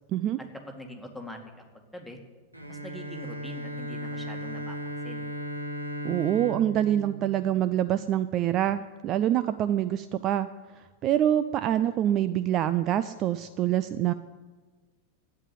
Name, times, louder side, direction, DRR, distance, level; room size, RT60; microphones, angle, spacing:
voice 1, 0.7-2.2 2.7-5.3, equal, ahead, 2 dB, 2.1 m, -43 dB
Bowed string instrument, 2.5-8.2, right 1 dB, 85° right, 1.5 m, -37 dB
voice 2, 6.0-10.5 10.8-14.1, right 11 dB, 35° right, 13 dB, 0.4 m, -26 dB
12.0 x 9.2 x 8.2 m, 1.3 s
figure-of-eight pair, 90°, 0 cm